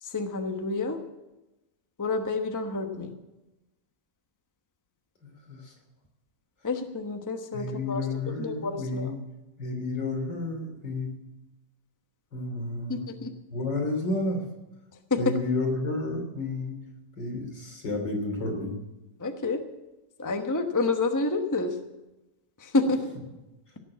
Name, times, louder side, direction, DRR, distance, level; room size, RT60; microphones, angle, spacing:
voice 1, 0.0-1.0 2.0-3.1 6.6-9.1 12.9-13.3 15.1-15.2 19.2-19.6 20.2-21.8 22.6-23.1, left 3 dB, 15° left, 5 dB, 0.9 m, -29 dB
voice 2, 5.2-5.7 7.5-9.1 9.6-11.1 12.3-13.1 13.5-14.4 15.2-16.8 17.2-18.8, left 2 dB, 80° left, 1 dB, 3.9 m, -31 dB
17.5 x 7.0 x 8.5 m, 1.0 s
omnidirectional pair, 1.9 m